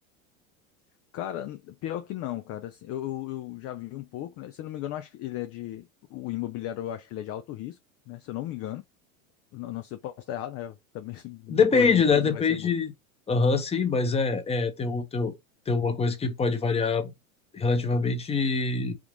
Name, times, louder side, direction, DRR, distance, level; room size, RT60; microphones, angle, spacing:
voice 1, 1.1-7.8 8.1-8.8 9.5-12.7, left 13 dB, 35° left, 0.5 m, -35 dB
voice 2, 11.5-12.9 13.3-15.3 15.7-17.1 17.5-18.9, left 4 dB, 15° left, 0.9 m, -24 dB
3.6 x 2.4 x 4.5 m
supercardioid pair, 115°, 42 cm